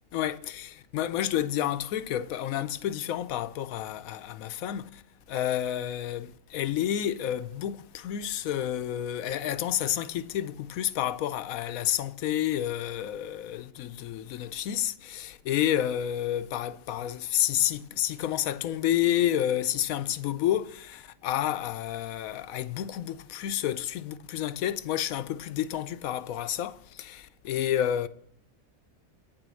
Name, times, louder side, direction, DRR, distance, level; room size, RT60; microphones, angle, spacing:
voice 1, 0.1-5.0 5.3-28.1, left 11 dB, 85° left, 1.1 m, -30 dB
9.7 x 7.5 x 6.3 m
omnidirectional pair, 1.4 m